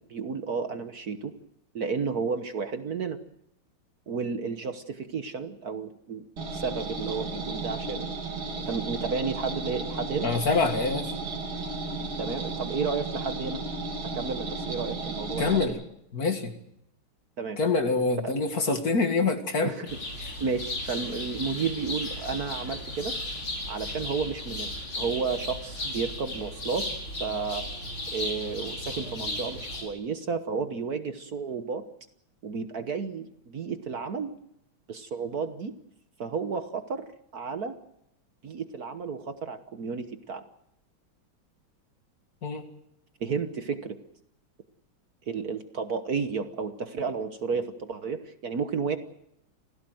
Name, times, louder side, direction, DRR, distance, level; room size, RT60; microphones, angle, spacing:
voice 1, 0.0-1.3 1.7-3.2 4.1-6.3 6.5-8.1 8.6-10.3 12.2-13.6 14.0-15.8 17.4-17.6 18.2-18.3 19.6-19.9 20.4-23.1 23.7-26.9 27.2-27.7 28.1-31.8 32.4-34.3 34.9-35.7 36.2-37.8 38.4-40.5 43.2-44.0 45.3-49.0, right 5 dB, 50° right, 9 dB, 1.5 m, -32 dB
sound 1, 6.4-15.7, right 3 dB, 85° right, 3.7 m, -34 dB
voice 2, 10.2-11.1 15.4-15.7 16.1-16.5 17.6-19.7 20.2-20.3 42.4-42.6, left 4 dB, 45° left, 6 dB, 2.4 m, -25 dB
sound 2, 19.9-29.8, left 1 dB, 80° left, 6.2 m, -35 dB
27.0 x 16.0 x 7.8 m, 0.78 s
omnidirectional pair, 2.3 m